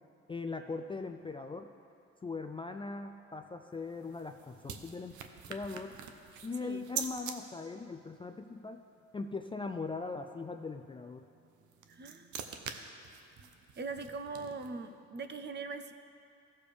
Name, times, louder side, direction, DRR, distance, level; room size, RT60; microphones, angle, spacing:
voice 1, 0.3-1.7 2.2-5.2 5.5-6.0 6.4-8.8 9.1-11.2, left 4 dB, 20° left, 6 dB, 0.3 m, -40 dB
sound 1, 3.7-7.4 11.5-14.9, right 7 dB, 75° right, 0.8 m, -44 dB
voice 2, 11.9-12.4 13.4-15.9, right 4 dB, 35° right, 9 dB, 0.6 m, -42 dB
15.5 x 6.9 x 3.4 m, 2.6 s
cardioid pair, 90°, 30 cm